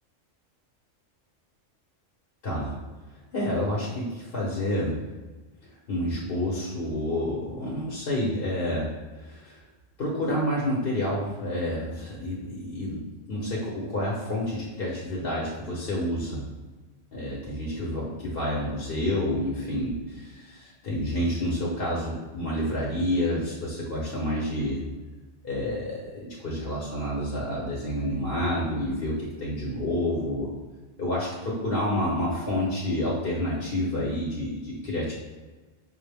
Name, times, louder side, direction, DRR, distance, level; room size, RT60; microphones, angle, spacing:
voice 1, 2.4-2.8 3.3-5.0 5.9-8.9 9.1-9.6 10.0-13.0 13.3-16.5 17.1-24.8 25.4-30.5 31.0-35.1, left 1 dB, 50° left, -5 dB, 0.9 m, -29 dB
5.2 x 2.1 x 3.4 m, 1.3 s
omnidirectional pair, 1.3 m